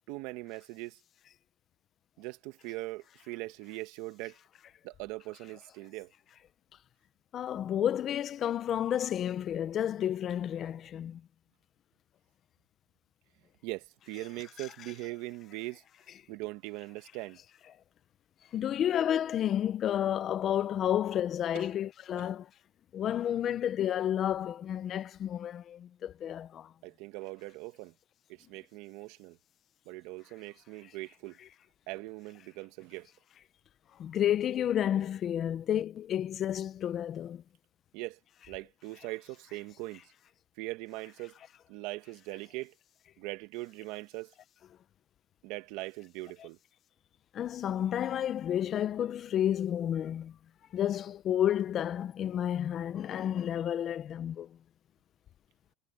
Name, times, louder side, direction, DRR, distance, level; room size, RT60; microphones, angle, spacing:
voice 1, 0.1-1.0 2.2-4.4 4.8-6.1 13.6-15.8 16.3-17.4 21.5-21.7 22.2-22.3 26.8-27.9 28.3-29.4 29.8-31.4 31.9-33.1 37.9-38.2 38.5-40.1 40.6-41.4 41.7-42.7 43.2-44.3 45.4-46.6, right 20 dB, 65° right, 1.5 m, -41 dB
voice 2, 7.3-11.2 14.6-14.7 18.5-22.5 22.9-26.7 34.0-37.4 47.3-50.3 50.7-54.5, left 10 dB, 35° left, 0.5 m, -31 dB
cardioid pair, 150°, 0 cm